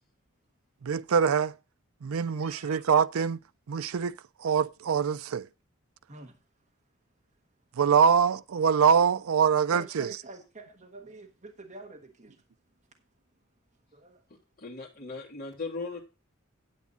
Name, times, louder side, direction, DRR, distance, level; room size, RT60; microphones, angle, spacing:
voice 1, 0.8-1.5 2.0-3.4 3.7-4.1 4.4-5.5 7.8-10.1, right 6 dB, 85° right, 0.5 m, -24 dB
voice 2, 2.1-2.9 6.1-6.4 9.7-12.4 13.9-14.2, right 2 dB, 35° right, 1.4 m, -46 dB
voice 3, 14.6-16.0, left 3 dB, 45° left, 2.7 m, -37 dB
9.6 x 8.3 x 4.1 m
head